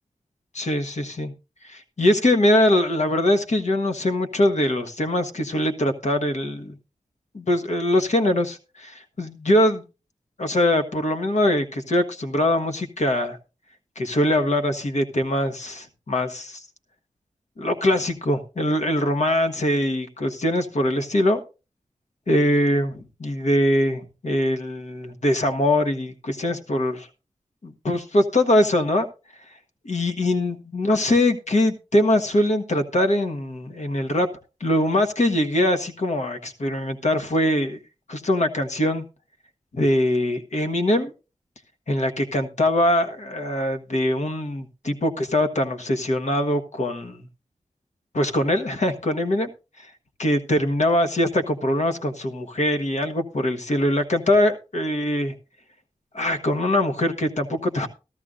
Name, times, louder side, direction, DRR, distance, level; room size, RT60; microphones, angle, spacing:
voice 1, 0.5-1.3 1.6-6.7 7.3-9.8 10.4-13.4 14.0-16.6 17.6-21.4 22.3-27.1 27.6-29.1 29.8-34.3 34.6-37.8 38.1-39.0 39.7-41.1 41.9-47.3 48.1-49.5 50.2-55.3 56.1-57.9, left 1 dB, 65° left, 6 dB, 1.4 m, -22 dB
14.0 x 13.5 x 2.5 m, 0.30 s
cardioid pair, 55°, 13 cm